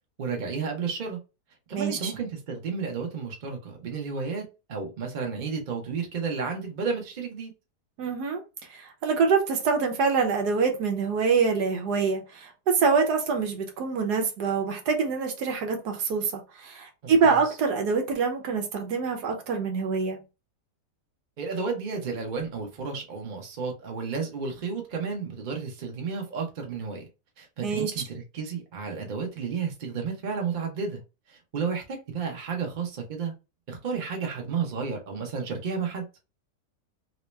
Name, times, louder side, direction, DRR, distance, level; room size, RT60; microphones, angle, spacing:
voice 1, 0.2-1.2 1.7-4.4 4.7-7.5 17.0-17.4 21.4-27.1 27.4-31.0 31.3-33.3 33.7-36.0, right 5 dB, 35° right, 0.8 m, -32 dB
voice 2, 1.7-2.1 8.0-8.4 8.7-20.2 27.6-27.9, right 5 dB, 75° right, 1.3 m, -25 dB
3.1 x 2.8 x 3.2 m
omnidirectional pair, 1.8 m